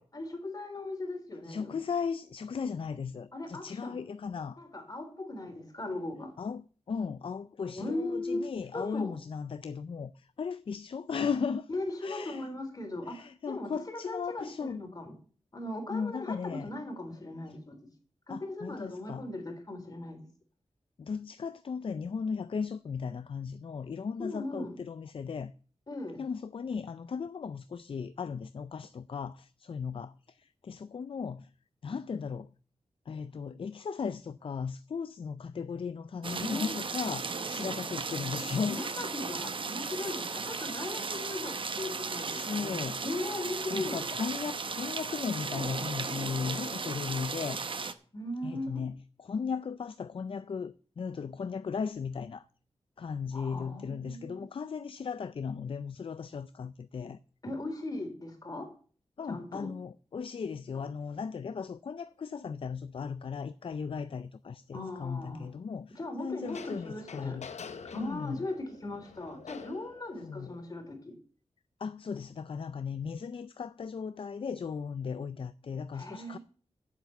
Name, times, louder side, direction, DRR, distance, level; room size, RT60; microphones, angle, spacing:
voice 1, 0.0-1.8 3.3-4.0 4.6-6.3 7.6-8.4 8.7-9.1 11.7-13.8 14.1-15.2 15.5-17.9 18.3-20.2 24.2-24.7 25.9-26.2 36.3-36.8 38.7-44.1 48.1-48.8 53.3-54.5 57.4-58.7 59.3-59.7 64.7-65.5 65.9-67.4 67.8-71.1 75.9-76.4, left 2 dB, 35° left, 3.4 m, -38 dB
voice 2, 1.5-4.6 6.4-11.7 12.0-12.5 13.1-14.8 15.9-16.7 18.3-19.2 21.0-25.5 26.2-31.5 31.8-32.5 33.1-38.8 42.2-43.0 43.7-47.6 48.4-52.4 53.0-57.2 59.2-67.5 67.9-68.4 70.2-70.5 71.8-76.4, left 6 dB, 50° left, 0.4 m, -36 dB
sound 1, 36.2-47.9, right 4 dB, 50° right, 0.9 m, -36 dB
sound 2, 62.0-62.1 66.4-70.7, left 5 dB, 85° left, 0.9 m, -47 dB
7.8 x 7.4 x 8.2 m
wide cardioid pair, 95°, 11 cm